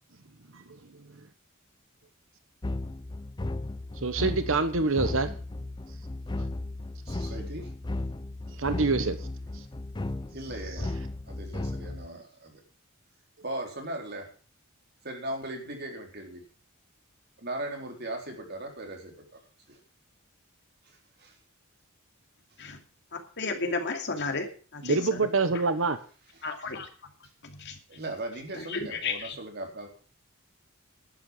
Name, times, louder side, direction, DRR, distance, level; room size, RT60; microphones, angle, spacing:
sound 1, 2.6-12.1, left 2 dB, 20° left, 0.5 m, -35 dB
voice 1, 4.0-5.3 8.6-9.2 24.8-26.0, right 3 dB, 65° right, 10 dB, 1.2 m, -25 dB
voice 2, 7.1-7.7 10.3-10.9 11.3-12.6 13.4-14.3 15.0-16.4 17.4-19.4 19.7-19.8 20.8-21.4 24.9-25.1 26.3-26.5 27.9-29.9, right 1 dB, 50° right, 2 dB, 4.1 m, -38 dB
voice 3, 23.4-24.5 24.7-25.2 26.4-26.9 27.4-27.8 28.6-29.4, left 3 dB, 55° left, 4 dB, 2.6 m, -32 dB
11.5 x 9.5 x 7.4 m, 0.38 s
head